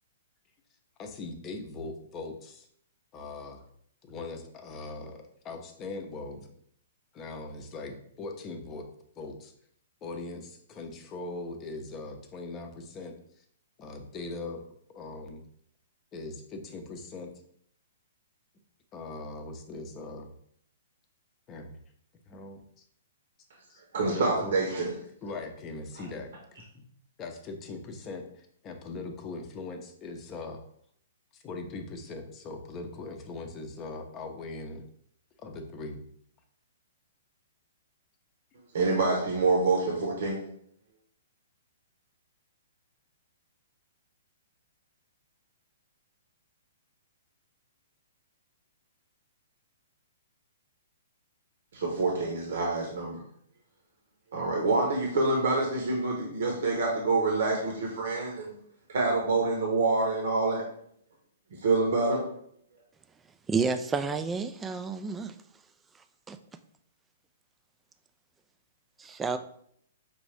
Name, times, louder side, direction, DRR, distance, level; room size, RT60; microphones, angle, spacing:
voice 1, 1.0-2.7 3.1-3.6 4.0-6.5 7.1-8.9 9.2-9.5 10.0-13.1 13.8-14.6 14.9-15.4 16.1-17.3 18.9-20.3 21.5-21.8 22.3-22.8 23.7-23.8 24.1-24.6 25.2-26.8 27.2-30.6 31.3-34.8 35.4-36.0, left 3 dB, 25° left, 0.7 m, -40 dB
voice 2, 23.9-24.9 38.7-40.4 51.7-53.2 54.3-58.6 58.9-60.6 61.5-62.3, right 3 dB, 65° right, 1.0 m, -26 dB
voice 3, 63.5-65.3 66.3-66.4 69.0-69.4, right 4 dB, 15° right, 0.3 m, -30 dB
5.3 x 2.5 x 3.3 m
hypercardioid pair, 125°, 0 cm